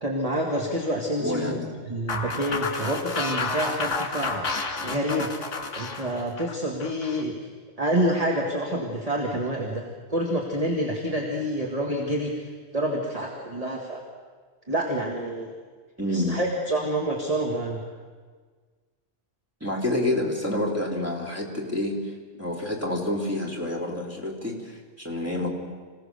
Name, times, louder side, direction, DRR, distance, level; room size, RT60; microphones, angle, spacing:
voice 1, 0.0-1.6 1.9-4.5 4.8-5.3 5.7-7.3 7.8-9.8 10.1-14.0 14.7-15.5 16.1-17.8, right 1 dB, 25° right, 0 dB, 2.1 m, -27 dB
voice 2, 1.2-1.7 16.0-16.4 19.6-22.1 22.4-25.5, left 1 dB, 10° right, -1 dB, 3.3 m, -28 dB
sound 1, 2.1-7.2, left 3 dB, 60° left, 2.2 m, -30 dB
26.5 x 17.0 x 6.8 m, 1.5 s
omnidirectional pair, 1.4 m